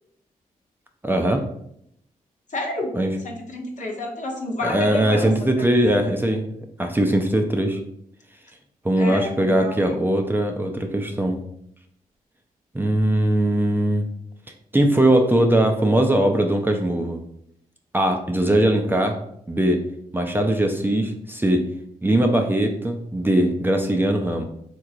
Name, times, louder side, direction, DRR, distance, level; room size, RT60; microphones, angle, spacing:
voice 1, 1.0-1.4 3.0-3.1 4.6-6.4 6.8-7.8 8.8-11.4 12.7-14.1 14.7-17.2 17.9-19.2 19.5-19.8 20.1-21.7 22.0-24.4, right 1 dB, 15° right, 3 dB, 0.5 m, -20 dB
voice 2, 2.5-2.9 3.2-5.5 5.8-6.0 9.0-10.0, left 2 dB, 55° left, -1 dB, 0.9 m, -30 dB
3.6 x 3.0 x 2.5 m, 0.73 s
supercardioid pair, 40°, 15 cm